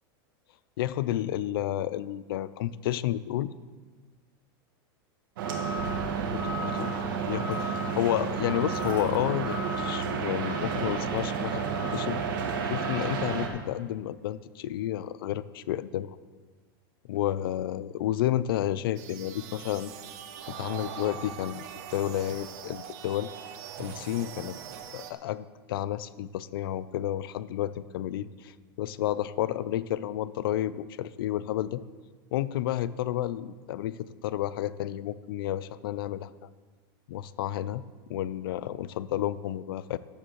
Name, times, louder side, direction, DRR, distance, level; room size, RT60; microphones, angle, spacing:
voice 1, 0.8-3.5 6.3-6.9 7.3-11.6 11.9-12.2 12.6-16.2 17.1-19.9 20.5-21.6 21.9-23.3 23.8-24.6 24.9-28.5 28.8-31.8 32.3-34.0 34.2-36.3 37.1-37.8 38.1-40.0, left 12 dB, 70° left, 17 dB, 0.4 m, -31 dB
sound 1, 5.4-13.5, right 5 dB, 60° right, 1.6 m, -30 dB
sound 2, 19.0-25.1, right 8 dB, 45° right, 0.8 m, -42 dB
14.0 x 10.0 x 3.1 m, 1.4 s
supercardioid pair, 175°, 12 cm